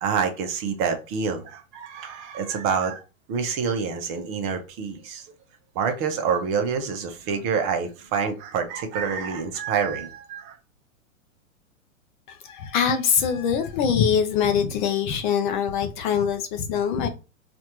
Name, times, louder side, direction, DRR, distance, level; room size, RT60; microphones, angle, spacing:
voice 1, 0.0-3.0 3.3-5.3 5.7-10.6, right 6 dB, 30° right, 0.8 m, -27 dB
voice 2, 12.3-17.1, left 7 dB, 35° left, 0.5 m, -23 dB
4.1 x 2.5 x 2.9 m
hypercardioid pair, 120°, 42 cm